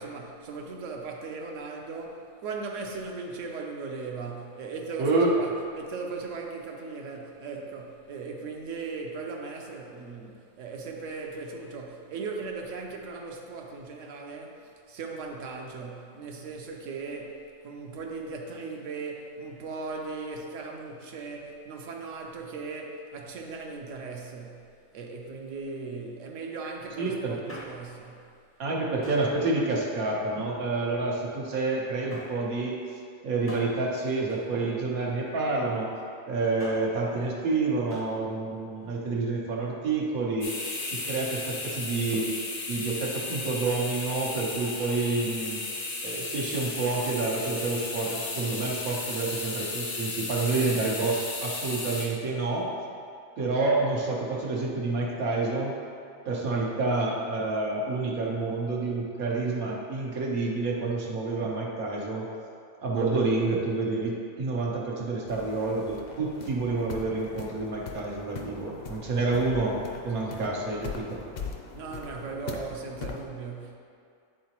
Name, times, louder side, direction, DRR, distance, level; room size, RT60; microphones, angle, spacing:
voice 1, 0.0-24.6 24.9-28.2 71.7-73.8, right 4 dB, 65° right, 1 dB, 1.0 m, -38 dB
voice 2, 5.0-5.3 27.0-27.3 28.6-32.8 33.2-35.9 36.3-40.5 40.8-42.3 42.7-45.6 46.0-52.7 53.4-55.7 56.2-62.3 62.8-69.8 70.0-71.2, right 3 dB, 85° right, -2 dB, 1.4 m, -28 dB
Male speech man speaking, 27.5-28.1 29.0-29.4 30.2-31.0 32.1-32.5 33.5-35.1 36.4-37.0 37.9-38.2 38.5-38.6, left 1 dB, 15° left, 0.4 m, -45 dB
sound 1, 40.4-52.1, left 3 dB, 80° left, 1.5 m, -34 dB
sound 2, 65.3-73.2, left 5 dB, 60° left, 0.7 m, -41 dB
10.0 x 3.8 x 2.9 m, 2.4 s
omnidirectional pair, 1.4 m